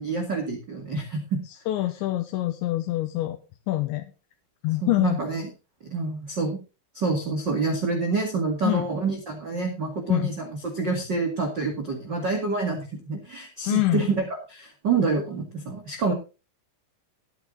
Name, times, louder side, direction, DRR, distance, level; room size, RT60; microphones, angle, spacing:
voice 1, 0.0-1.4 4.8-5.5 5.8-6.6 6.9-16.1, right 4 dB, 85° right, 2 dB, 0.9 m, -27 dB
voice 2, 1.7-3.4 3.7-4.1 4.6-5.2 8.6-8.9 10.1-10.3 13.7-14.1, left 16 dB, 80° left, 7 dB, 2.9 m, -25 dB
14.0 x 9.4 x 3.8 m, 0.32 s
omnidirectional pair, 5.7 m